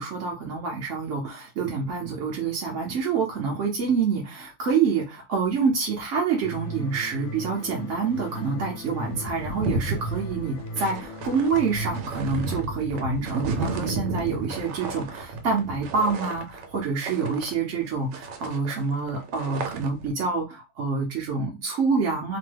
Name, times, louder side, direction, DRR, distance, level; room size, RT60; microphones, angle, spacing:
voice 1, 0.0-22.4, right 5 dB, 65° right, -1 dB, 0.8 m, -27 dB
sound 1, 6.4-12.0, equal, 90° left, 1.2 m, -37 dB
sound 2, 8.9-17.9 18.1-20.1, right 3 dB, 85° right, 1.3 m, -34 dB
2.9 x 2.2 x 3.2 m, 0.26 s
omnidirectional pair, 1.8 m